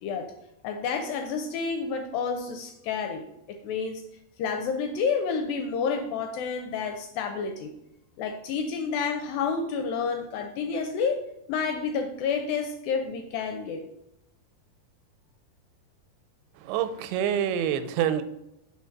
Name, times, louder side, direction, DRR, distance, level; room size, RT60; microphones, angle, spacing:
voice 1, 0.0-0.3 0.6-4.0 4.4-7.7 8.2-11.2 11.5-13.9, left 5 dB, 80° left, 6 dB, 2.1 m, -29 dB
voice 2, 16.6-18.2, right 9 dB, 90° right, 10 dB, 2.6 m, -26 dB
4.7 x 4.4 x 5.7 m, 0.84 s
omnidirectional pair, 4.5 m